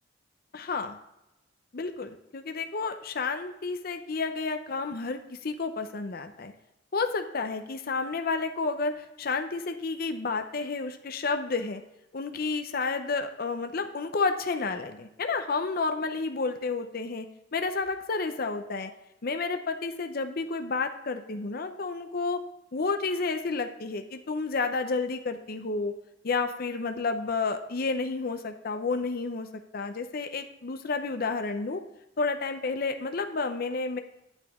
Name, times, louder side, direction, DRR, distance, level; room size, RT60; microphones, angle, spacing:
voice 1, 0.5-1.0 1.7-6.5 6.9-11.8 12.1-17.3 17.5-18.9 19.2-22.4 22.7-25.9 26.2-29.5 29.7-31.8 32.2-34.0, left 4 dB, 55° left, 7 dB, 0.6 m, -30 dB
9.0 x 9.0 x 3.6 m, 0.92 s
head